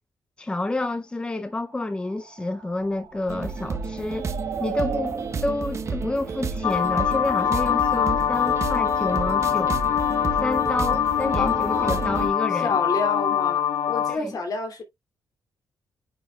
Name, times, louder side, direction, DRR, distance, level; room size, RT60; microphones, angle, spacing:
voice 1, 0.4-4.3 4.6-9.8 10.4-12.8 14.1-14.4, left 2 dB, 15° left, 0.5 m, -29 dB
sound 1, 1.6-7.4, right 7 dB, 75° right, 2.2 m, -38 dB
sound 2, 3.3-12.3, right 4 dB, 40° right, 0.9 m, -31 dB
sound 3, 6.6-14.2, left 9 dB, 80° left, 0.9 m, -23 dB
voice 2, 11.3-12.0 12.6-14.8, left 3 dB, 55° left, 2.6 m, -30 dB
9.2 x 5.0 x 2.3 m
cardioid pair, 120°, 7 cm